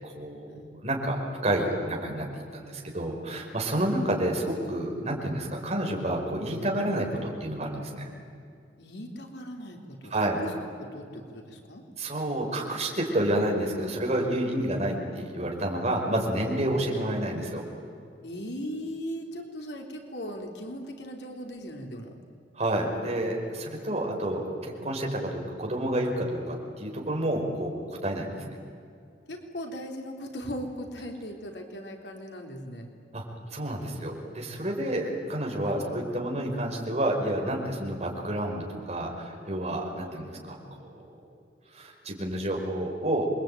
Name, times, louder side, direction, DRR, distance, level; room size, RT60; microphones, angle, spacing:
voice 1, 0.0-8.1 10.1-10.4 12.0-17.6 22.5-28.4 33.1-33.2 33.5-41.0 41.7-43.3, right 1 dB, 40° right, 0 dB, 5.1 m, -29 dB
voice 2, 8.8-10.5 10.8-11.8 18.2-22.2 29.3-32.9 35.7-36.1, equal, 75° left, 2 dB, 3.5 m, -38 dB
27.5 x 23.0 x 9.1 m, 2.5 s
head